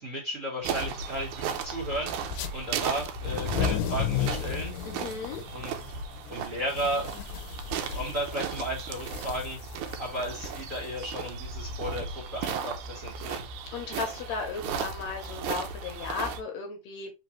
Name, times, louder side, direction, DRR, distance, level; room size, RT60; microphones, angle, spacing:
voice 1, 0.0-4.7 5.5-5.7 6.3-7.1 7.9-9.6 10.0-13.5, right 1 dB, 30° right, 1.7 m, -34 dB
sound 1, 0.6-16.4, right 5 dB, 90° right, 2.1 m, -35 dB
sound 2, 2.2-2.5 3.1-11.6, left 10 dB, 90° left, 2.2 m, -35 dB
voice 2, 4.8-5.4 13.7-17.1, left 5 dB, 70° left, 1.9 m, -35 dB
4.7 x 3.4 x 3.0 m
omnidirectional pair, 3.5 m